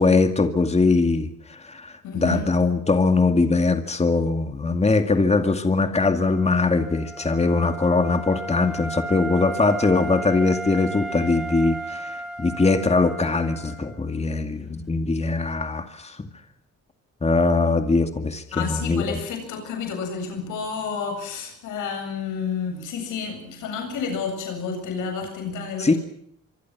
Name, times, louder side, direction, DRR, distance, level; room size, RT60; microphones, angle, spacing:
voice 1, 0.0-16.2 17.2-19.2 25.8-25.9, left 3 dB, 20° left, 7 dB, 2.3 m, -21 dB
voice 2, 2.0-2.4 18.5-26.0, left 5 dB, 90° left, 5 dB, 7.9 m, -30 dB
Wind instrument woodwind instrument, 6.2-14.0, right 3 dB, ahead, 4.6 m, -34 dB
25.0 x 25.0 x 6.0 m, 0.71 s
cardioid pair, 90°, 30 cm